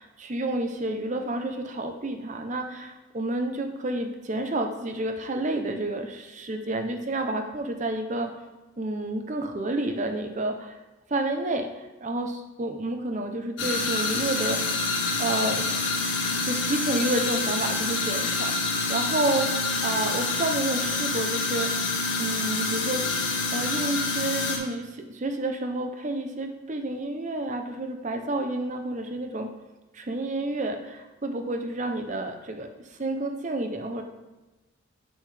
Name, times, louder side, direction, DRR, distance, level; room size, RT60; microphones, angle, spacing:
voice 1, 0.0-8.3 8.8-10.8 11.1-14.6 15.2-15.9 16.4-21.7 22.2-23.1 23.5-29.5 29.9-32.7 33.0-34.0, right 2 dB, 35° right, 5 dB, 0.6 m, -30 dB
sound 1, 13.6-24.6, left 3 dB, 60° left, 1.3 m, -27 dB
7.5 x 7.0 x 3.3 m, 1.1 s
head